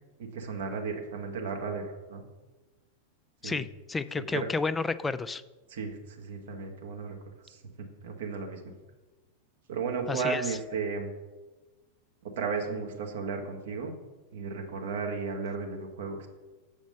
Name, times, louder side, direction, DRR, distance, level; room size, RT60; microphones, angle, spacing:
voice 1, 0.2-2.2 3.4-3.6 4.2-4.5 5.7-7.2 7.4-7.6 8.0-8.6 9.7-11.1 12.4-13.9 14.3-16.3, right 5 dB, 60° right, 2 dB, 1.3 m, -34 dB
voice 2, 3.4-5.4 10.1-10.4, left 4 dB, 15° left, 14 dB, 0.3 m, -31 dB
7.2 x 5.1 x 5.3 m, 1.2 s
figure-of-eight pair, 90°, 0 cm